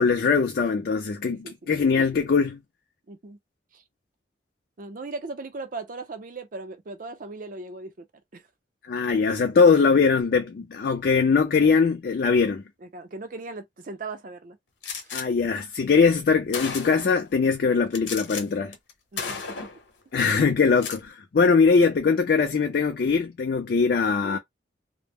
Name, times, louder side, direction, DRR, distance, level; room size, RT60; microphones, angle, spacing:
voice 1, 0.0-2.6 8.9-12.6 15.1-18.7 20.1-24.4, left 5 dB, 55° left, 0.4 m, -21 dB
voice 2, 1.3-1.7 3.1-3.4 3.7-3.8 4.8-8.1 8.3-8.4 12.8-14.6 15.0-15.1 19.1-19.4, right 3 dB, 50° right, 0.5 m, -38 dB
Gunshot gunfire, 14.8-15.2 16.1-16.2 16.5-17.2 17.9-18.4 18.7-18.9 19.2-19.8 20.6-21.0, left 5 dB, 80° left, 0.8 m, -33 dB
2.1 x 2.0 x 3.4 m
head